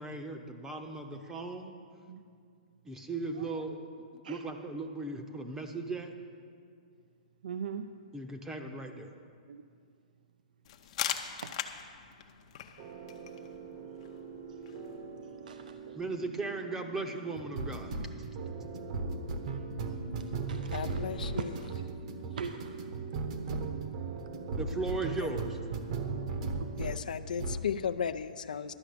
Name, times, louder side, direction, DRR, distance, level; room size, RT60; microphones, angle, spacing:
voice 1, 0.0-1.7 2.8-6.1 8.1-9.1 15.9-17.9 24.6-25.6, right 3 dB, 10° right, 4 dB, 0.7 m, -37 dB
voice 2, 7.4-7.9 9.5-9.6 11.4-11.5 15.5-16.0 20.2-21.0 21.4-21.7 22.4-22.8 26.5-26.7, right 6 dB, 75° right, 8 dB, 0.5 m, -41 dB
sound 1, 10.7-16.2, left 10 dB, 45° left, 0.7 m, -41 dB
sound 2, 12.8-27.1 27.4-27.7, right 3 dB, 50° right, 1.0 m, -38 dB
voice 3, 19.9-20.5 20.7-21.6 25.1-25.3 26.8-28.8, left 7 dB, 80° left, 11 dB, 0.5 m, -36 dB
11.5 x 5.8 x 8.4 m, 2.2 s
hypercardioid pair, 150°, 4 cm